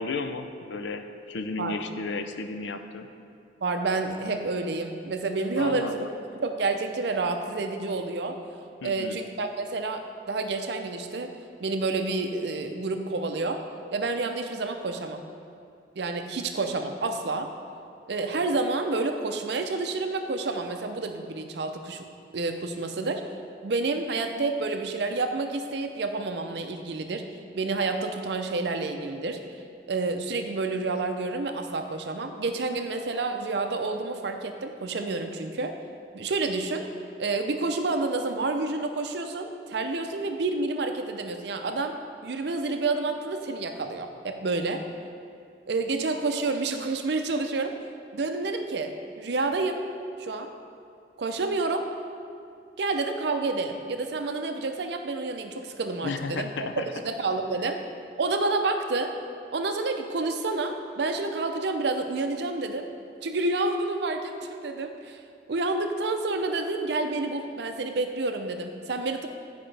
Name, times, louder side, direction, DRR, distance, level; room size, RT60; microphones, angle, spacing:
voice 1, 0.0-3.1 5.6-6.1 8.8-9.2 56.0-56.9, left 3 dB, 80° left, 8 dB, 0.5 m, -33 dB
voice 2, 3.6-6.0 6.4-8.4 8.8-11.3 11.6-13.6 13.9-15.2 16.0-17.5 18.1-22.0 22.3-23.2 23.6-27.2 27.5-29.4 29.9-35.7 36.1-36.9 37.2-42.0 42.2-44.8 45.7-47.7 48.1-49.8 50.2-50.5 51.2-51.9 52.8-56.5 56.8-57.8 58.2-59.1 59.5-62.9 63.2-65.2 65.5-69.3, right 3 dB, 65° right, 6 dB, 0.5 m, -29 dB
9.8 x 5.2 x 3.3 m, 2.4 s
head